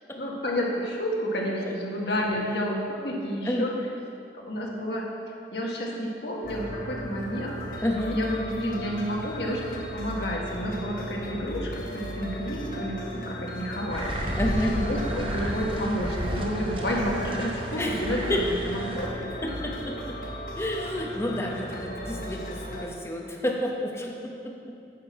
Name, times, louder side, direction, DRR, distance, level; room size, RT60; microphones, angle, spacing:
voice 1, 0.2-3.7 4.4-5.0 5.5-19.5, equal, 70° left, -2 dB, 1.5 m, -30 dB
sound 1, 6.4-22.9, equal, 55° left, 1.0 m, -36 dB
voice 2, 7.8-8.2 14.4-14.7 17.8-18.0 18.3-18.4 19.6-19.7 20.1-20.2 20.6-24.5, left 1 dB, 15° left, -1 dB, 0.8 m, -29 dB
sound 2, 13.9-19.1, right 1 dB, 30° right, 0.7 m, -33 dB
10.0 x 6.0 x 4.6 m, 2.5 s
head